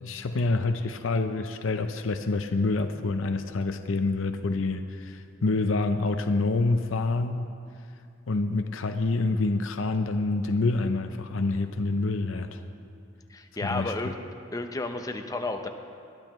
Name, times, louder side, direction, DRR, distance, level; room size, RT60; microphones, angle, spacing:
voice 1, 0.0-7.5 8.3-12.6 13.6-13.9, left 3 dB, 85° left, 7 dB, 0.6 m, -27 dB
voice 2, 13.3-14.2 14.5-15.7, left 2 dB, 20° left, 6 dB, 0.7 m, -32 dB
20.5 x 12.5 x 3.1 m, 2.4 s
head